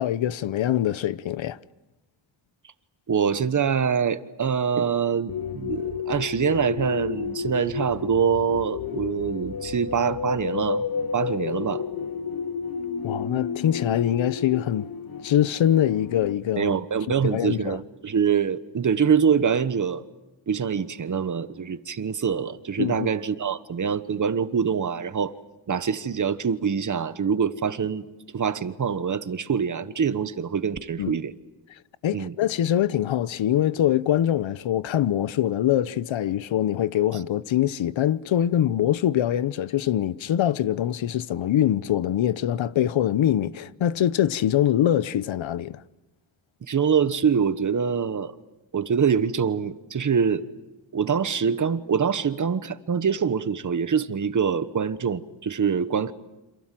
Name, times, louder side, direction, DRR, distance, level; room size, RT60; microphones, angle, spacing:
voice 1, 0.0-1.6 13.0-14.9 15.2-16.7 17.2-17.8 22.8-23.1 31.0-31.2 32.0-45.8, left 11 dB, 80° left, 0.9 m, -23 dB
voice 2, 3.1-10.8 11.1-11.8 16.6-20.0 20.5-25.3 25.7-28.0 28.3-31.3 32.1-32.3 46.6-48.3 48.7-50.4 50.9-56.1, right 7 dB, 40° right, 1.3 m, -24 dB
sound 1, 5.3-16.3, left 6 dB, 50° left, 1.1 m, -31 dB
29.0 x 26.5 x 7.6 m
wide cardioid pair, 140°, 46 cm